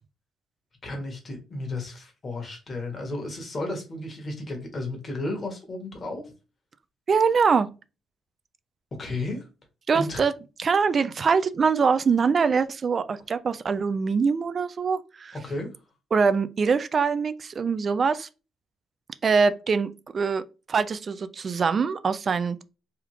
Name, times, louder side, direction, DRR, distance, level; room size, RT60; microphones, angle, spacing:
voice 1, 0.8-6.2 9.0-9.5 9.9-10.2 15.3-15.7, left 2 dB, 40° left, 1.4 m, -33 dB
voice 2, 7.1-7.7 9.9-10.3 10.6-15.4 16.1-18.3 19.2-20.4 20.7-22.6, right 5 dB, 45° right, 0.3 m, -23 dB
3.4 x 2.3 x 3.0 m
cardioid pair, 90°, 0 cm